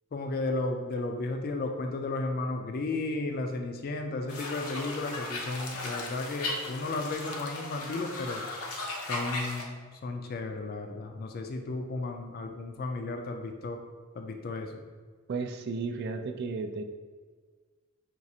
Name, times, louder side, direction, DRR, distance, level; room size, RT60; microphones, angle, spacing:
voice 1, 0.1-8.4 9.1-13.8 14.1-14.8, left 2 dB, 45° left, 4 dB, 0.3 m, -34 dB
sound 1, 4.3-9.6, left 2 dB, 90° left, 0.7 m, -37 dB
voice 2, 15.3-16.8, right 4 dB, 50° right, 8 dB, 0.3 m, -33 dB
6.0 x 2.4 x 2.7 m, 1.5 s
head